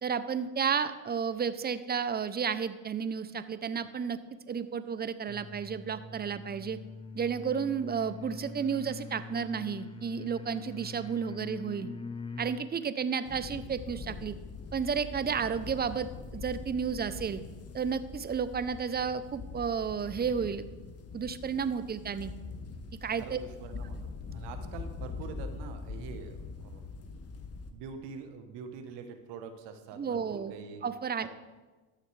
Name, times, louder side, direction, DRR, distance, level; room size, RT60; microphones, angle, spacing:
voice 1, 0.0-4.2 4.5-6.8 7.1-11.9 12.4-14.3 14.7-17.4 17.7-20.7 21.1-22.3 23.0-23.4 30.0-30.5 30.8-31.3, right 6 dB, 20° right, 12 dB, 0.6 m, -32 dB
sound 1, 5.3-12.7, left 3 dB, 10° left, 0.8 m, -43 dB
sound 2, 13.2-27.7, left 4 dB, 35° left, 1.1 m, -43 dB
voice 2, 23.2-24.0 24.3-26.8 27.7-30.8 31.2-31.3, right 6 dB, 70° right, 7 dB, 1.1 m, -45 dB
13.0 x 6.5 x 3.3 m, 1.3 s
hypercardioid pair, 65°, 43 cm